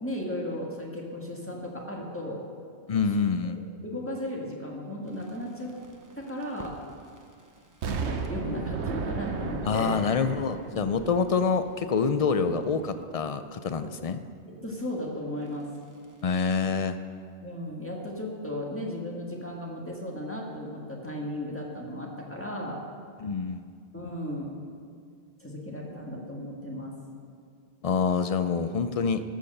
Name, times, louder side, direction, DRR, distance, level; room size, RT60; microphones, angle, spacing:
voice 1, 0.0-2.4 3.4-5.7 6.2-6.7 7.8-10.2 13.8-13.9 14.6-15.7 17.4-22.8 23.9-24.5 25.4-26.9, left 1 dB, 10° left, -2 dB, 1.6 m, -35 dB
voice 2, 2.9-3.6 9.6-14.2 16.2-17.0 23.2-23.6 27.8-29.2, left 5 dB, 55° left, 10 dB, 0.4 m, -26 dB
sound 1, 5.1-13.0 15.5-16.3, right 2 dB, 20° right, 0.7 m, -44 dB
Explosion, 7.8-11.8 12.2-12.3, right 5 dB, 85° right, 1.1 m, -35 dB
13.0 x 6.6 x 6.6 m, 2.3 s
omnidirectional pair, 1.1 m